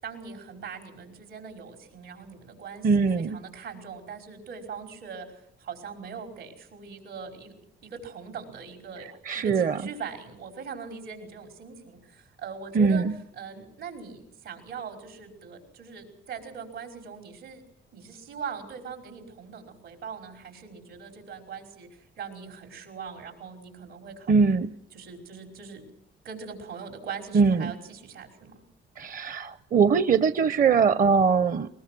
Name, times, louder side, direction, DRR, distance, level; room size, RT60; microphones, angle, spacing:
voice 1, 0.0-5.3 5.6-7.5 7.8-9.1 9.3-13.0 13.4-17.6 17.9-24.6 24.9-25.8 26.2-28.6, right 6 dB, 85° right, 4 dB, 5.2 m, -41 dB
voice 2, 2.8-3.4 9.3-9.8 12.7-13.1 24.3-24.7 27.3-27.7 29.0-31.7, right 5 dB, 45° right, 13 dB, 0.7 m, -21 dB
21.5 x 20.5 x 6.1 m, 0.70 s
cardioid pair, 90°, 20 cm